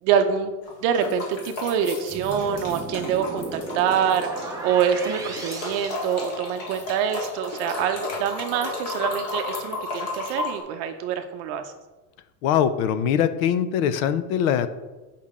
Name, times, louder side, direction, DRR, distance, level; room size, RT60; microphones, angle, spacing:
voice 1, 0.0-0.5 0.8-11.7, right 8 dB, 45° right, 7 dB, 0.7 m, -25 dB
sound 1, 0.6-4.5 4.8-10.6, left 3 dB, 30° left, 1.9 m, -33 dB
sound 2, 2.1-6.8, right 2 dB, 10° right, 0.6 m, -36 dB
voice 2, 12.4-14.7, left 9 dB, 65° left, 12 dB, 0.7 m, -22 dB
8.4 x 5.7 x 3.6 m, 1.2 s
supercardioid pair, 175°, 46 cm